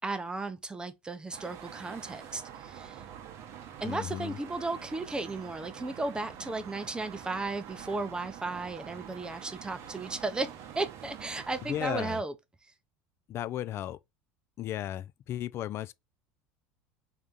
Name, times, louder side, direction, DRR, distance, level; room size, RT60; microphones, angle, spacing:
voice 1, 0.0-3.0 3.8-12.3, right 3 dB, 15° right, 0.7 m, -35 dB
sound 1, 1.3-12.2, right 9 dB, 55° right, 0.8 m, -46 dB
voice 2, 3.8-4.4 11.7-12.2 13.3-14.0 14.6-15.9, left 12 dB, 45° left, 0.3 m, -35 dB
3.4 x 2.8 x 3.6 m
hypercardioid pair, 85°, 6 cm